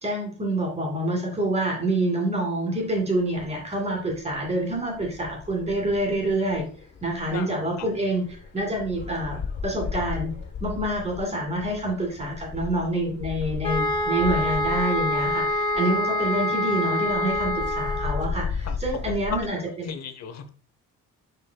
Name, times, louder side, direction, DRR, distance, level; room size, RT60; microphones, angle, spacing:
voice 1, 0.0-6.7 7.0-10.3 10.6-19.9, right 1 dB, 20° right, 1 dB, 2.5 m, -27 dB
sound 1, 2.8-19.5, left 5 dB, 35° left, 1.0 m, -36 dB
sound 2, 13.6-18.3, left 1 dB, 20° left, 0.8 m, -26 dB
voice 2, 19.9-20.5, left 7 dB, 60° left, 9 dB, 0.8 m, -36 dB
6.7 x 6.3 x 2.3 m, 0.40 s
cardioid pair, 160°, 30 cm